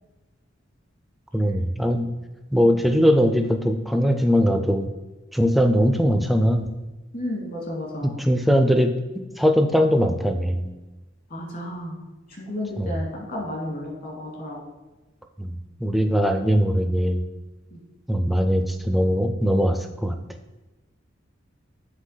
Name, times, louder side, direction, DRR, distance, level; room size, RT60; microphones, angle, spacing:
voice 1, 1.3-2.1 2.5-4.9 5.3-6.7 8.0-8.9 9.4-10.7 12.8-13.0 15.4-15.5 15.8-17.2 18.1-20.2, equal, ahead, 6 dB, 0.4 m, -20 dB
voice 2, 7.1-8.2 11.3-12.0 12.4-14.6 17.7-17.8, left 1 dB, 50° left, -2 dB, 2.2 m, -32 dB
7.4 x 3.4 x 5.6 m, 1.1 s
head